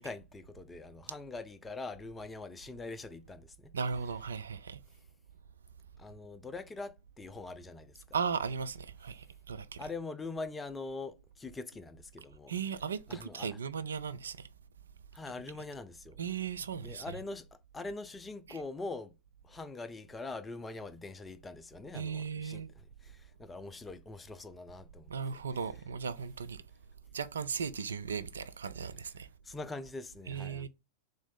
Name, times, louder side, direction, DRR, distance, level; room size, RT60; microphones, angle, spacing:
voice 1, 0.0-3.7 6.0-8.0 9.8-12.5 13.1-13.5 15.1-16.2 16.8-17.5 17.7-19.1 19.4-22.6 23.0-25.4 29.4-30.7, left 3 dB, 15° left, 0.3 m, -43 dB
voice 2, 3.7-4.8 8.1-9.8 12.5-14.5 16.2-17.1 18.5-18.6 21.9-22.7 25.1-26.6 27.1-29.3 30.3-30.7, right 6 dB, 70° right, 0.3 m, -37 dB
3.5 x 2.6 x 3.8 m
figure-of-eight pair, 90°, 0 cm